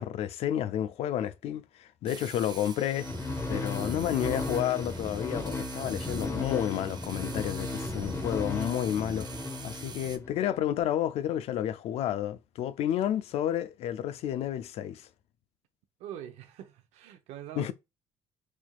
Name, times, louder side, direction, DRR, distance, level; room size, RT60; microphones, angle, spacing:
voice 1, 0.0-3.1 3.5-9.3 9.6-15.1 17.6-17.7, left 11 dB, 70° left, 0.4 m, -31 dB
sound 1, 2.1-10.2, right 6 dB, 40° right, 0.5 m, -46 dB
sound 2, 2.9-10.4, left 2 dB, 25° left, 0.8 m, -35 dB
voice 2, 16.0-17.7, right 11 dB, 85° right, 0.6 m, -43 dB
4.3 x 2.9 x 2.2 m
cardioid pair, 80°, 11 cm